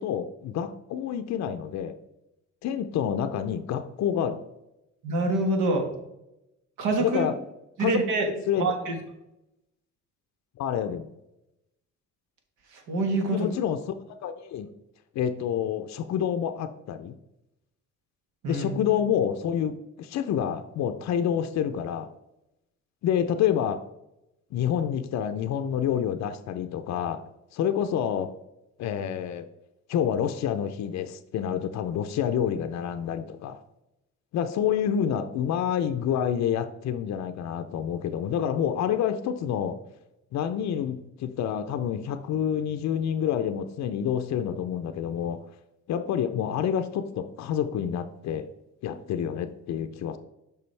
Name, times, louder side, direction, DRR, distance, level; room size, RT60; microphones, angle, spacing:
voice 1, 0.0-2.0 2.6-4.4 7.0-7.3 7.8-8.0 8.5-8.6 10.6-11.1 13.3-14.7 15.1-17.1 18.5-22.1 23.0-23.9 24.5-27.2 27.5-28.3 28.8-29.5 29.9-33.6 34.3-39.8 40.3-45.4 45.9-48.5 48.8-50.2, left 9 dB, 65° left, 8 dB, 0.5 m, -28 dB
voice 2, 5.0-5.9 6.8-7.3 7.8-8.3 8.6-8.9 12.7-13.5 18.4-18.7, right 2 dB, 90° right, 3 dB, 1.4 m, -26 dB
6.8 x 5.1 x 3.2 m, 0.89 s
cardioid pair, 90°, 30 cm